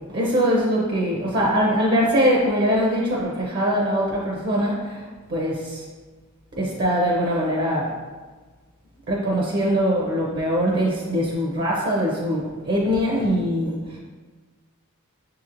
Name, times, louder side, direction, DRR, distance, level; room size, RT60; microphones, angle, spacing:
voice 1, 0.1-5.0 5.3-5.8 6.5-7.9 9.1-14.0, equal, 45° right, -3 dB, 0.5 m, -22 dB
6.7 x 2.9 x 2.5 m, 1.4 s
head